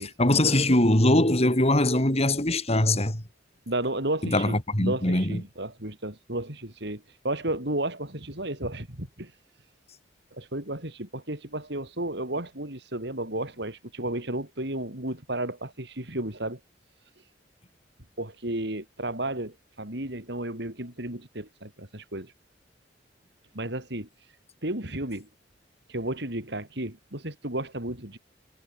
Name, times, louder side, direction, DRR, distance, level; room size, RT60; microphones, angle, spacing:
voice 1, 0.0-3.2 4.2-5.4, left 1 dB, 35° left, 4.8 m, -22 dB
voice 2, 3.7-9.3 10.3-16.6 18.2-22.3 23.5-24.1 24.6-25.3 25.9-28.2, right 1 dB, 65° right, 6.1 m, -33 dB
head